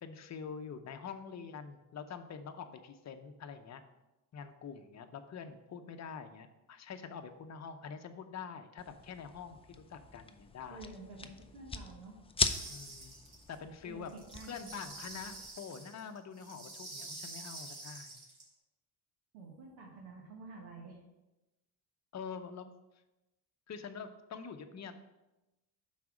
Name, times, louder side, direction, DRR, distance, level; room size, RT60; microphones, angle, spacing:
voice 1, 0.0-3.8 4.3-10.9 12.7-13.1 13.5-14.1 14.4-18.2 22.1-22.7 23.7-24.9, left 6 dB, 35° left, 7 dB, 0.7 m, -45 dB
sound 1, 8.8-15.5, left 4 dB, 15° left, 0.4 m, -40 dB
voice 2, 10.7-12.2 13.8-14.7 19.3-21.0, right 3 dB, 90° right, 0 dB, 1.4 m, -50 dB
sound 2, 12.4-13.5 14.1-18.4, right 2 dB, 55° right, 2.6 m, -47 dB
5.9 x 4.2 x 6.0 m, 1.0 s
supercardioid pair, 85°, 47 cm